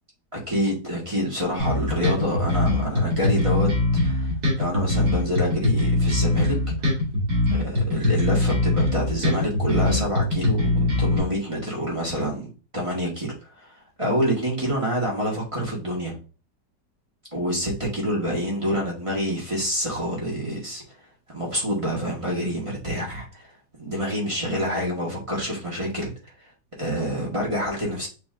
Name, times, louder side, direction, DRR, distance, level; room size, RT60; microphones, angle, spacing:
voice 1, 0.3-3.7 4.0-4.3 4.6-6.6 7.5-13.7 14.0-16.1 17.3-20.8 21.3-23.5 23.8-26.1 26.8-28.1, equal, 20° right, 1.4 m, -27 dB
sound 1, 1.6-11.2, left 2 dB, 75° right, 3.0 m, -22 dB
6.5 x 3.1 x 2.5 m
omnidirectional pair, 1.8 m